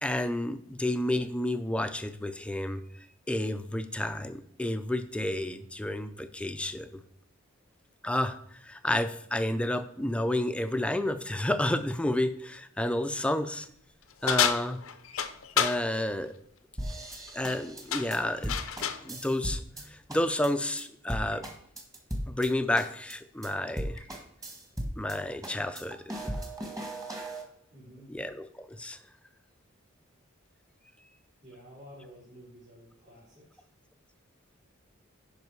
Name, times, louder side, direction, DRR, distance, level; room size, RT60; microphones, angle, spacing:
voice 1, 0.0-7.0 8.0-13.7 14.2-14.8 15.6-16.3 17.3-18.6 19.0-21.5 22.3-24.0 25.0-26.2 28.1-29.0, left 1 dB, 5° left, 10 dB, 0.4 m, -31 dB
sound 1, 14.3-15.8 17.3-17.6 17.9-19.1, left 8 dB, 85° left, 0.7 m, -29 dB
sound 2, 16.8-19.8 20.1-20.5 20.8-20.9 21.1-22.5 22.8-23.1 23.4-23.5 23.8-25.2 25.4-27.4, right 1 dB, 15° right, 1.4 m, -37 dB
voice 2, 27.7-28.2 31.4-33.6, equal, 65° right, -10 dB, 3.9 m, -51 dB
10.5 x 5.3 x 4.7 m, 0.69 s
head